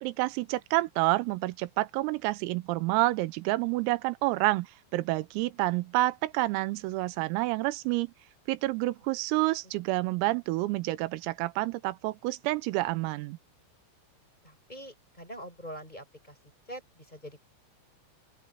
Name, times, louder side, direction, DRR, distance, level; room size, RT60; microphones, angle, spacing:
voice 1, 0.0-4.7 4.9-8.1 8.5-13.4, right 19 dB, 90° right, 3.6 m, -28 dB
voice 2, 14.4-16.4 16.7-17.4, equal, 10° left, 6.4 m, -44 dB
open air
omnidirectional pair, 5.9 m